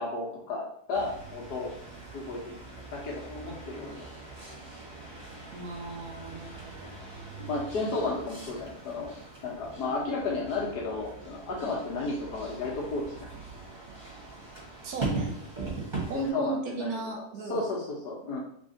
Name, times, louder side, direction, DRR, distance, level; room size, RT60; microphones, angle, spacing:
voice 1, 0.0-1.7 2.1-2.6 2.9-4.0 7.3-9.1 9.4-13.0 16.1-17.0 17.5-18.4, left 3 dB, 80° left, -2 dB, 1.6 m, -33 dB
sound 1, 0.9-16.3, right 3 dB, 30° right, 1.2 m, -40 dB
voice 2, 5.5-6.9 14.8-15.3 16.1-17.7 18.2-18.3, right 4 dB, 70° right, 2 dB, 1.2 m, -37 dB
3.6 x 3.2 x 2.7 m, 0.69 s
omnidirectional pair, 1.7 m